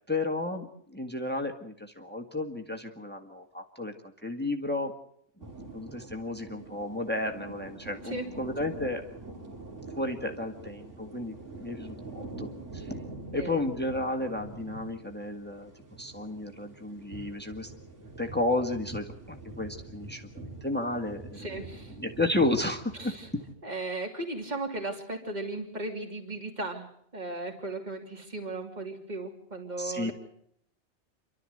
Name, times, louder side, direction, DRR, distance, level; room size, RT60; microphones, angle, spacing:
voice 1, 0.1-4.9 5.7-9.0 10.0-12.9 13.3-15.7 16.0-17.7 18.2-21.5 22.0-23.1 29.8-30.1, left 2 dB, 10° left, 5 dB, 1.6 m, -32 dB
sound 1, 5.4-23.5, right 2 dB, 85° right, 3.3 m, -45 dB
voice 2, 13.3-13.7 21.3-21.9 22.9-23.3 23.6-30.1, right 2 dB, 35° right, 3 dB, 3.0 m, -36 dB
29.0 x 12.5 x 7.8 m, 0.68 s
omnidirectional pair, 1.2 m